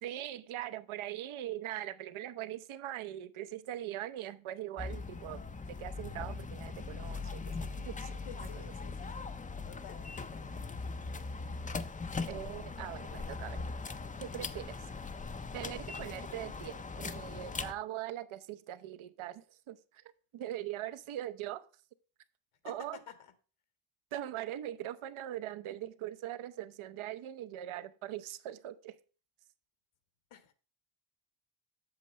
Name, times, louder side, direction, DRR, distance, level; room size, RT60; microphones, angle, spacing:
voice 1, 0.0-5.4 5.7-8.7 12.2-13.6 14.2-14.9 15.5-20.0 20.3-21.7 22.6-23.0 24.1-29.0, right 12 dB, 75° right, 0.8 m, -41 dB
sound 1, 4.8-17.7, left 4 dB, 15° left, 0.4 m, -40 dB
voice 2, 8.1-9.1 9.7-10.1 10.4-10.5 22.6-23.1 30.3-30.5, left 9 dB, 80° left, 1.5 m, -51 dB
8.1 x 6.6 x 3.2 m
cardioid pair, 120°, 49 cm